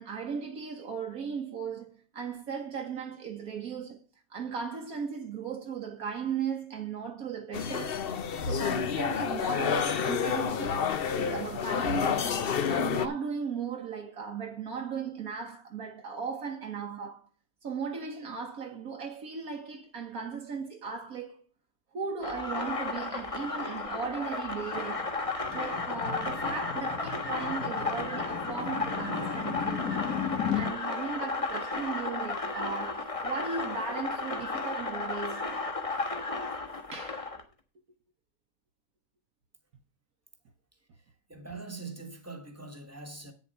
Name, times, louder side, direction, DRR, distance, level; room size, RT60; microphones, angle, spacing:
voice 1, 0.0-4.0 4.3-8.1 8.4-10.9 11.1-17.3 17.6-21.4 21.9-25.1 25.5-29.9 30.5-35.7 36.9-37.3, right 6 dB, 75° right, 1.6 m, -37 dB
sound 1, 7.5-13.1, left 7 dB, 50° left, 0.8 m, -29 dB
sound 2, 22.2-37.4, left 3 dB, 25° left, 1.5 m, -34 dB
sound 3, 24.7-30.7, left 8 dB, 85° left, 1.8 m, -36 dB
voice 2, 41.3-43.3, right 3 dB, 10° right, 1.4 m, -42 dB
9.2 x 7.0 x 5.5 m
omnidirectional pair, 1.5 m